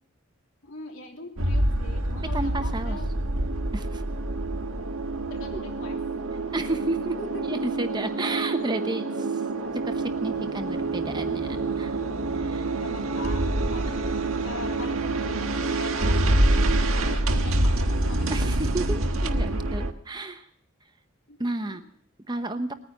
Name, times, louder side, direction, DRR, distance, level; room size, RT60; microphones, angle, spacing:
voice 1, 0.6-3.1 5.3-6.1 7.2-7.8 9.1-9.8 12.7-16.4 16.9-18.7 21.3-21.4, left 2 dB, 70° left, 3 dB, 3.0 m, -42 dB
sound 1, 1.4-19.9, right 2 dB, 85° right, 1.4 m, -26 dB
voice 2, 2.3-3.0 3.7-4.0 5.5-5.6 6.5-7.2 7.4-9.2 9.8-9.9 10.2-11.9 12.4-12.6 18.3-20.5 21.4-21.8 22.3-22.8, right 2 dB, 20° right, 8 dB, 0.9 m, -32 dB
20.5 x 9.8 x 7.2 m, 0.63 s
head